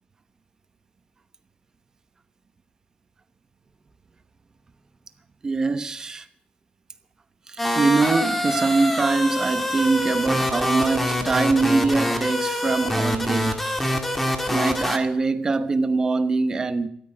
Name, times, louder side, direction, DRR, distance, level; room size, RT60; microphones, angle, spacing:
voice 1, 5.4-6.3 7.5-13.6 14.5-16.9, right 3 dB, 20° right, 1.0 m, -23 dB
sound 1, 7.6-15.0, left 1 dB, 5° left, 1.9 m, -25 dB
14.5 x 13.0 x 7.8 m
cardioid pair, 170°, 3 cm